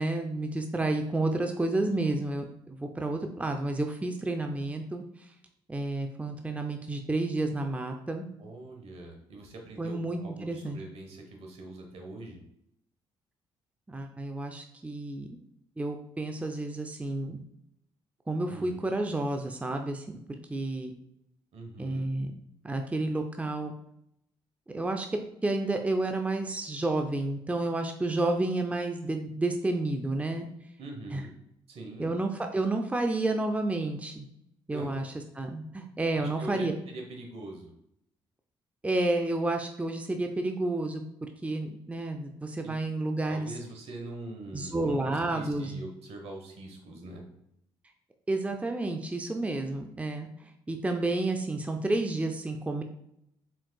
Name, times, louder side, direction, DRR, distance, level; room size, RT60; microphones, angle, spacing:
voice 1, 0.0-5.0 5.7-8.3 9.8-10.8 13.9-15.4 15.8-17.4 18.3-20.2 20.5-20.9 21.8-22.3 22.6-23.7 24.7-25.1 25.4-30.4 31.1-31.2 32.0-34.3 34.7-36.7 38.8-41.0 41.4-43.5 44.5-45.8 48.3-52.8, right 2 dB, 10° right, 4 dB, 0.5 m, -30 dB
voice 2, 8.4-12.4 18.5-18.8 21.5-22.1 30.8-31.3 31.7-32.1 34.7-34.9 36.1-37.7 42.6-42.8 43.3-47.2, right 2 dB, 70° right, 2 dB, 1.0 m, -43 dB
4.5 x 3.6 x 2.3 m, 0.76 s
supercardioid pair, 60°, 11 cm